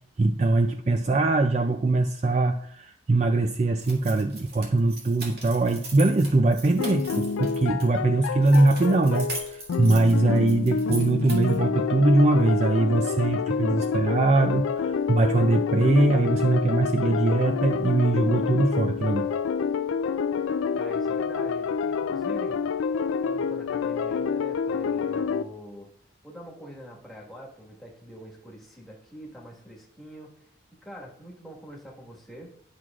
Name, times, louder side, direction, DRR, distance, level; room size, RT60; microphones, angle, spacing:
voice 1, 0.2-19.3, right 2 dB, 35° right, 7 dB, 0.3 m, -22 dB
sound 1, 3.8-7.9 8.4-11.6, right 2 dB, 50° right, 2.1 m, -40 dB
sound 2, 6.8-25.4, left 6 dB, 90° left, 0.3 m, -28 dB
voice 2, 20.7-22.6 23.2-25.9 26.2-30.5 30.8-32.5, equal, ahead, -3 dB, 1.5 m, -44 dB
11.0 x 6.0 x 2.4 m, 0.67 s
head